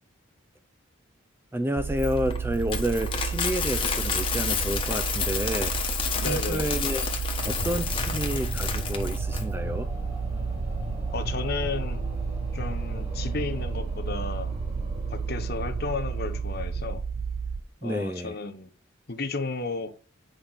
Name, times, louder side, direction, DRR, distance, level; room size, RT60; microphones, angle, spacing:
voice 1, 1.5-5.7 6.2-7.1 7.5-9.9 17.8-18.4, right 1 dB, 10° right, 0.4 m, -30 dB
sound 1, 1.8-17.6, right 5 dB, 75° right, 0.5 m, -32 dB
Coin (dropping), 2.0-9.4, left 6 dB, 25° left, 1.2 m, -30 dB
voice 2, 6.2-6.8 11.1-12.0 12.5-14.5 15.1-17.0 17.8-18.7 19.1-19.9, left 3 dB, 50° left, 1.0 m, -33 dB
sound 2, 7.4-16.8, left 1 dB, 25° right, 3.4 m, -38 dB
8.0 x 5.0 x 4.1 m
head